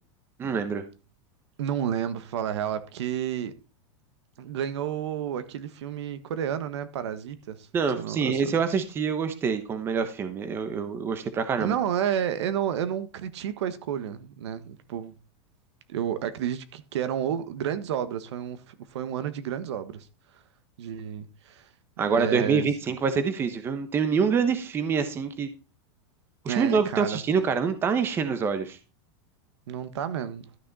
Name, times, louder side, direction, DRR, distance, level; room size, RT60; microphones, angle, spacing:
voice 1, 0.4-0.8 7.7-11.7 22.0-25.5 26.4-28.8, right 6 dB, 15° right, 1.0 m, -26 dB
voice 2, 1.6-3.5 4.4-7.7 7.9-8.5 11.6-15.1 15.9-20.1 20.3-20.4 20.8-21.7 22.1-22.7 26.5-27.2 29.7-30.5, right 9 dB, 80° right, 1.4 m, -31 dB
13.0 x 6.2 x 4.1 m
supercardioid pair, 170°, 14 cm